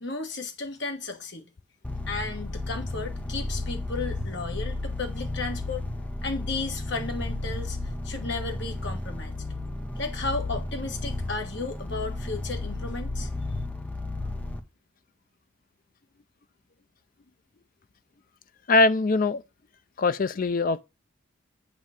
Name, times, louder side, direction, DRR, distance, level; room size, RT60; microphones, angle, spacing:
voice 1, 0.0-1.5 2.1-9.3 10.0-13.3, left 3 dB, 60° left, 1.6 m, -34 dB
sound 1, 1.8-14.6, left 2 dB, 5° left, 0.9 m, -33 dB
voice 2, 18.7-19.4 20.0-20.8, left 3 dB, 45° left, 0.5 m, -22 dB
8.4 x 3.2 x 6.5 m
head